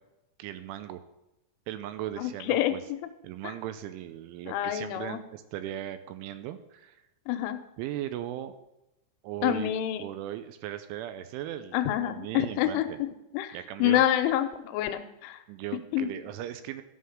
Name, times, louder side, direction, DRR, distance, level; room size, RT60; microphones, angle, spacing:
voice 1, 0.4-1.0 1.7-2.8 3.2-7.0 7.8-8.5 9.2-9.7 10.0-13.0 13.5-14.0 15.5-16.8, right 12 dB, 85° right, 11 dB, 2.9 m, -38 dB
voice 2, 2.2-2.8 4.5-5.2 7.3-7.6 9.4-10.0 11.7-13.1 13.3-15.4 15.9-16.1, left 12 dB, 80° left, 9 dB, 3.0 m, -27 dB
13.0 x 5.8 x 6.3 m, 0.92 s
omnidirectional pair, 5.8 m